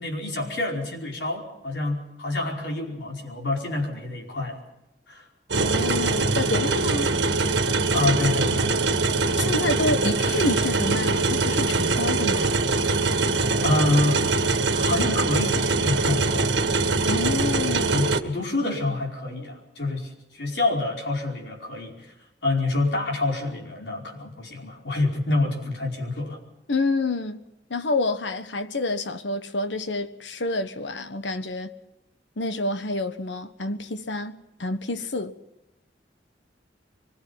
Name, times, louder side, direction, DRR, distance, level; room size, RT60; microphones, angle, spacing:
voice 1, 0.0-4.6 5.1-5.2 7.9-8.8 13.6-14.3 14.7-16.6 17.9-22.1 22.4-26.4, left 2 dB, 70° left, 5.1 m, -27 dB
voice 2, 5.5-7.1 9.4-12.5 17.1-18.0 26.7-27.4 27.7-31.7 32.4-35.3, left 2 dB, 90° left, 1.3 m, -28 dB
sound 1, 5.5-18.2, right 3 dB, 80° right, 1.6 m, -23 dB
24.5 x 22.0 x 5.8 m
head